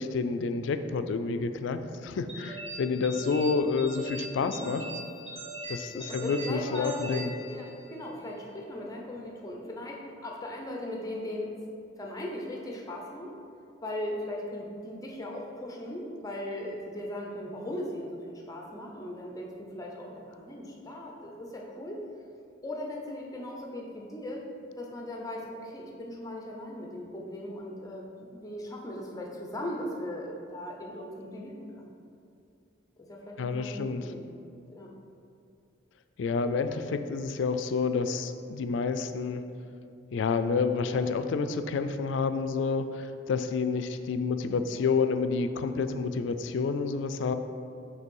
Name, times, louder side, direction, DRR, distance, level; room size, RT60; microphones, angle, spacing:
voice 1, 0.0-4.8 5.7-7.3 33.4-34.1 36.2-39.4 40.1-47.3, left 4 dB, 65° left, 10 dB, 0.3 m, -29 dB
sound 1, 2.3-8.1, right 1 dB, 30° right, 0.9 m, -41 dB
voice 2, 5.9-11.5 12.0-13.3 13.8-22.0 22.6-24.4 24.8-31.9 33.0-34.3 34.7-34.9, left 1 dB, 15° left, -1 dB, 0.6 m, -38 dB
5.4 x 3.3 x 5.3 m, 2.5 s
head